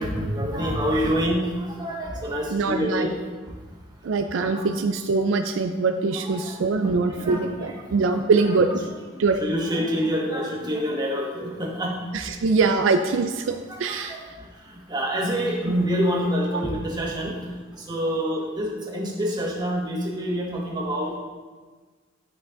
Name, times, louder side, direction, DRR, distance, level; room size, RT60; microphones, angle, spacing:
voice 1, 0.0-3.1 3.5-3.6 4.5-4.6 6.1-7.9 8.4-12.2 13.1-13.2 13.7-21.2, equal, 20° right, -3 dB, 1.6 m, -27 dB
voice 2, 2.5-3.1 4.0-8.7 9.2-9.4 12.1-14.2 16.5-16.6, right 4 dB, 75° right, 6 dB, 0.4 m, -23 dB
9.4 x 5.6 x 3.8 m, 1.4 s
head